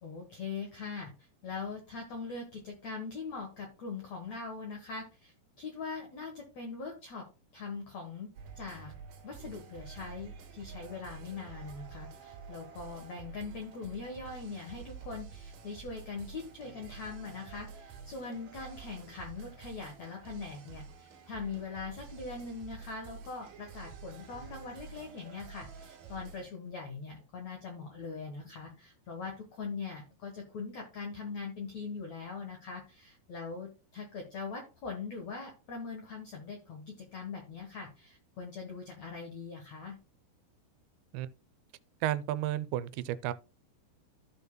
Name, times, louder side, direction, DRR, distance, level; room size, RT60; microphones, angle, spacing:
voice 1, 0.0-7.3 7.5-8.3 8.5-8.9 9.2-40.0, left 4 dB, 75° left, 1.6 m, -42 dB
sound 1, 8.3-26.5, right 5 dB, 60° right, 2.7 m, -49 dB
voice 2, 42.0-43.3, right 13 dB, 90° right, 2.8 m, -32 dB
14.5 x 5.3 x 2.2 m
omnidirectional pair, 5.0 m